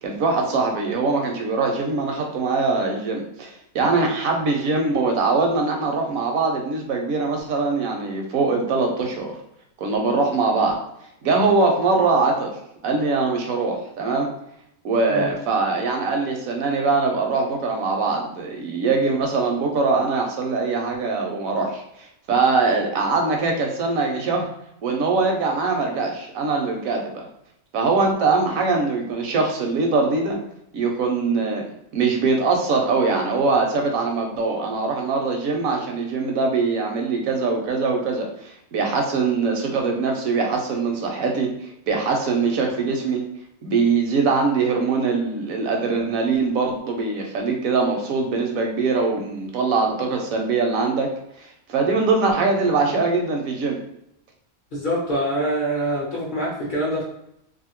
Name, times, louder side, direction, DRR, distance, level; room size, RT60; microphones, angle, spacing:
voice 1, 0.0-9.4 9.8-10.8 11.2-12.5 12.8-14.3 14.8-24.5 24.8-27.3 27.7-30.4 30.7-31.6 31.9-43.2 43.6-51.1 51.4-53.8, right 4 dB, 75° right, 1 dB, 1.1 m, -22 dB
voice 2, 54.7-57.0, right 1 dB, 45° left, -5 dB, 0.7 m, -25 dB
2.7 x 2.5 x 2.9 m, 0.78 s
omnidirectional pair, 1.5 m